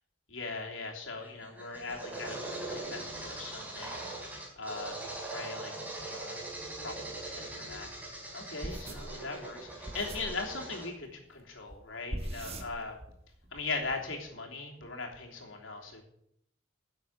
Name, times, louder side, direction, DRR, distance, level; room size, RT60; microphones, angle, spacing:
voice 1, 0.3-4.0 4.6-5.0 5.3-5.7 6.0-6.4 6.8-7.9 8.3-13.0 13.5-16.0, left 3 dB, 80° left, 1 dB, 3.1 m, -39 dB
sound 1, 1.2-10.9, right 2 dB, 10° right, 4.2 m, -41 dB
sound 2, 8.6-10.4 11.7-11.8 12.1-13.2 13.4-14.0, right 1 dB, 30° right, 1.6 m, -41 dB
11.0 x 7.6 x 8.6 m, 0.75 s
head